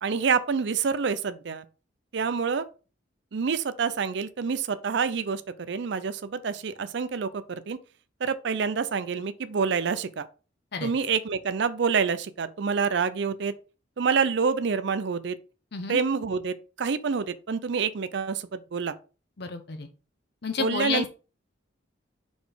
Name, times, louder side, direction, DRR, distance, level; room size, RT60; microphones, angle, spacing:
voice 1, 0.0-1.6 2.1-2.7 3.3-5.4 5.7-7.8 8.2-10.3 10.8-13.5 14.0-15.4 15.9-18.9 20.6-21.1, right 5 dB, 60° right, 0.5 m, -27 dB
voice 2, 19.4-19.9 20.4-21.0, left 5 dB, 60° left, 0.7 m, -30 dB
5.1 x 4.1 x 4.9 m
head